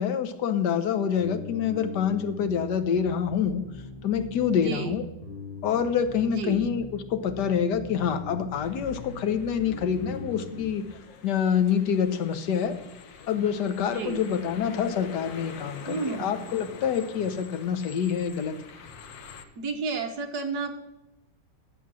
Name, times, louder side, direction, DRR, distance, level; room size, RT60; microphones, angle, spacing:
voice 1, 0.0-3.6 4.0-5.0 5.6-10.8 11.2-12.8 13.3-18.6, left 7 dB, 70° left, 9 dB, 1.4 m, -26 dB
sound 1, 1.2-10.7, left 3 dB, 50° left, 5.3 m, -42 dB
voice 2, 4.5-5.0 6.2-6.6 13.8-14.2 15.9-16.3 19.5-20.7, right 4 dB, 60° right, 4 dB, 1.6 m, -32 dB
sound 2, 8.5-19.4, left 5 dB, 85° left, 1.7 m, -46 dB
10.0 x 7.6 x 6.1 m, 0.95 s
omnidirectional pair, 2.0 m